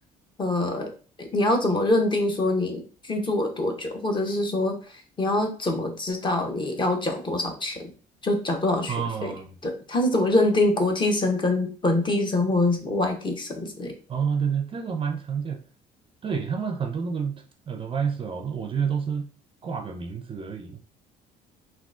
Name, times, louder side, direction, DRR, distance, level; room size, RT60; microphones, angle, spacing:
voice 1, 0.4-0.9 1.2-4.8 5.2-7.9 8.2-9.0 9.2-9.3 9.6-13.9, left 2 dB, 30° left, 4 dB, 0.6 m, -24 dB
voice 2, 8.9-9.5 14.1-15.6 16.2-19.3 19.6-20.8, right 6 dB, 30° right, 4 dB, 0.4 m, -29 dB
3.5 x 2.3 x 2.4 m, 0.38 s
cardioid pair, 110°, 17 cm